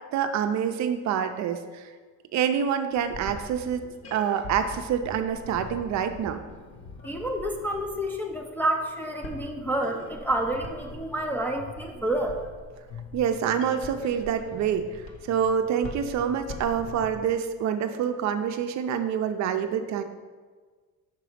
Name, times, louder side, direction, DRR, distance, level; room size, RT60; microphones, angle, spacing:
voice 1, 0.1-1.6 2.3-3.8 4.1-6.4 13.1-14.9 15.3-20.0, right 8 dB, 55° right, 8 dB, 0.5 m, -26 dB
sound 1, 2.9-17.3, left 2 dB, 40° left, 0.9 m, -43 dB
voice 2, 7.0-12.4, right 1 dB, 5° left, 0 dB, 0.3 m, -29 dB
6.0 x 3.9 x 4.9 m, 1.5 s
cardioid pair, 155°, 33 cm